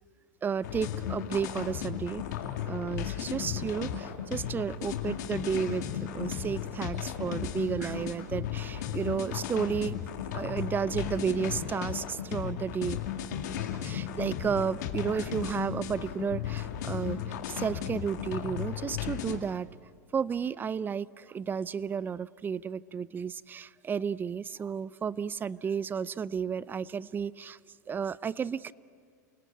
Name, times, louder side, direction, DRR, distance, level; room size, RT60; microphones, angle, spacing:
voice 1, 0.4-2.2 2.7-10.0 10.3-13.0 13.8-19.7 20.1-27.6 27.9-28.7, right 6 dB, 20° right, 20 dB, 0.5 m, -32 dB
sound 1, 0.6-19.4, left 9 dB, 70° left, 2.1 m, -35 dB
28.5 x 19.0 x 8.7 m, 2.2 s
hypercardioid pair, 105°, 10 cm